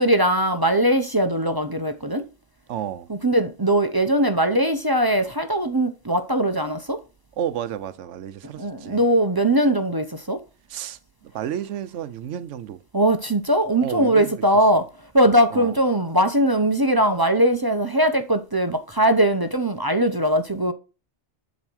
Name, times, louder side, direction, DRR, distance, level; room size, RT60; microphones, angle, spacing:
voice 1, 0.0-2.3 3.1-7.0 8.5-10.4 12.9-20.7, right 1 dB, 25° right, 0.7 m, -20 dB
voice 2, 2.7-3.1 7.4-9.0 10.7-12.8 13.8-14.4 15.5-15.8, right 10 dB, 85° right, 1.0 m, -31 dB
10.5 x 4.1 x 6.2 m
omnidirectional pair, 1.2 m